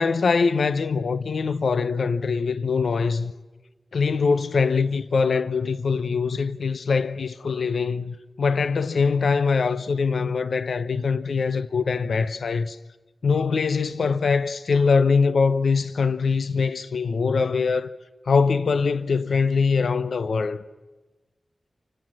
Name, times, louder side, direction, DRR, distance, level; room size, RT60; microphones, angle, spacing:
voice 1, 0.0-3.3 3.9-12.8 13.2-17.9 18.3-20.6, left 5 dB, 85° left, 0.7 m, -23 dB
29.0 x 17.5 x 7.6 m
wide cardioid pair, 105°, 0 cm